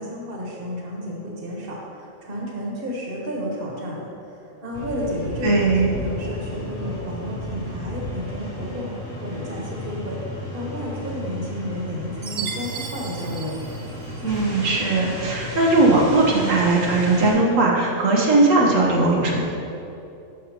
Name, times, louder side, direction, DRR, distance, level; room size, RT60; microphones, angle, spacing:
voice 1, 0.0-13.6, equal, 45° right, -3 dB, 1.5 m, -32 dB
sound 1, 4.7-17.3, left 1 dB, 50° left, 2.3 m, -33 dB
voice 2, 5.4-5.9 14.2-19.4, right 2 dB, 90° right, -2 dB, 1.4 m, -19 dB
Chime, 12.2-14.5, right 6 dB, 65° right, 1.1 m, -35 dB
11.5 x 5.4 x 2.9 m, 2.8 s
omnidirectional pair, 1.3 m